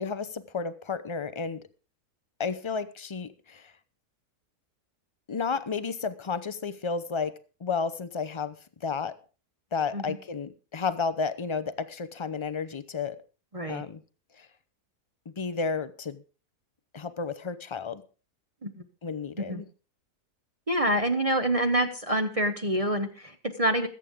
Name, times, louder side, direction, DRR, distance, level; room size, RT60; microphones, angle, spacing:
voice 1, 0.0-1.6 2.4-3.7 5.3-7.3 7.6-8.6 8.8-9.2 9.7-13.2 13.7-14.0 14.4-14.5 15.4-16.2 16.9-18.0 19.0-19.7, left 5 dB, 45° left, 14 dB, 0.4 m, -32 dB
voice 2, 20.7-23.9, right 1 dB, 25° right, 5 dB, 0.9 m, -26 dB
21.0 x 8.5 x 3.6 m, 0.36 s
omnidirectional pair, 1.6 m